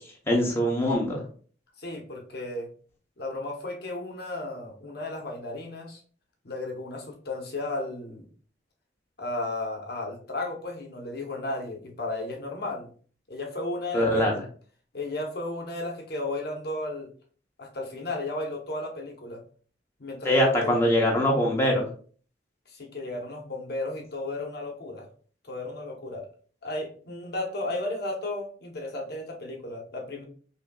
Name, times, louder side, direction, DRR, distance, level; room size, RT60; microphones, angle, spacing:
voice 1, 0.3-1.2 13.9-14.4 20.2-21.9, equal, 15° left, -2 dB, 0.8 m, -23 dB
voice 2, 1.8-2.7 3.2-6.0 6.4-8.3 9.2-12.9 13.3-14.3 14.9-17.1 17.6-19.4 20.0-20.8 22.7-25.1 25.4-26.3 26.6-30.2, left 2 dB, 60° left, 2 dB, 0.9 m, -34 dB
5.4 x 2.6 x 2.3 m, 0.43 s
head